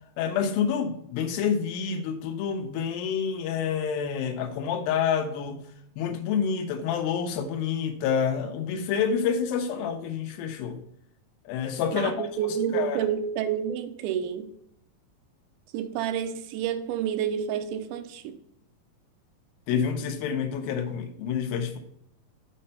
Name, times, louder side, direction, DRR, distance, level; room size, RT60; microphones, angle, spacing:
voice 1, 0.2-5.6 6.0-10.8 11.5-12.3 12.7-13.1 19.7-21.8, left 7 dB, 85° left, 2.6 m, -28 dB
voice 2, 11.9-14.5 15.7-18.4, right 9 dB, 85° right, 2.5 m, -29 dB
7.5 x 4.3 x 5.4 m
omnidirectional pair, 4.3 m